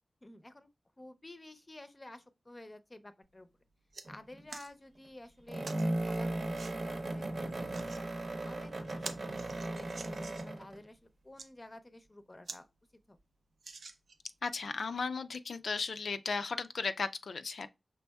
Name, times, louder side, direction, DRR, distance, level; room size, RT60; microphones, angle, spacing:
voice 1, 0.2-0.7 1.0-3.5 4.1-8.1 8.4-11.0 11.2-12.7 13.1-13.2, left 1 dB, 25° left, 0.5 m, -52 dB
sound 1, 3.2-3.4 3.7-4.1 4.5-4.7 5.6-5.9 6.5-6.7 7.5-8.0 8.5-8.6 8.9-10.6 11.2-11.5 12.0-12.1 12.4-12.6 13.0-13.1 13.6-14.3 15.0-15.1, right 4 dB, 85° right, 0.5 m, -47 dB
sound 2, 4.0-4.4 5.5-10.8, right 2 dB, 55° right, 0.8 m, -36 dB
voice 2, 14.4-17.7, left 4 dB, 85° left, 0.3 m, -35 dB
5.3 x 3.4 x 2.2 m
wide cardioid pair, 105°, 0 cm